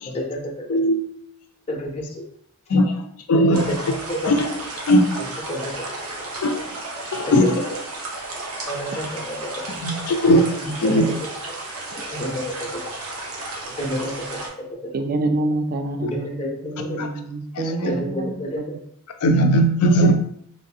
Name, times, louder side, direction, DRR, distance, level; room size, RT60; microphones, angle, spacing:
voice 1, 0.1-0.8 1.7-2.3 3.3-3.8 4.1-4.3 5.2-5.7 7.3-7.5 8.7-9.8 10.6-11.3 12.1-12.8 13.8-14.4 14.7-14.9 16.0-17.0 17.9-18.6 20.0-20.1, equal, 30° left, 0 dB, 0.6 m, -29 dB
voice 2, 0.7-1.0 2.7-3.0 3.3-3.7 4.2-4.4 4.9-5.0 6.4-6.5 7.1-7.5 9.8-10.4 10.8-11.0 17.0-17.1 17.8-17.9 19.2-20.1, equal, 90° left, 5 dB, 0.4 m, -17 dB
sound 1, 3.5-14.5, right 2 dB, 75° right, 0.7 m, -33 dB
voice 3, 14.9-18.7 19.2-19.4, right 2 dB, 40° right, 5 dB, 0.3 m, -27 dB
3.1 x 2.5 x 2.6 m, 0.67 s
head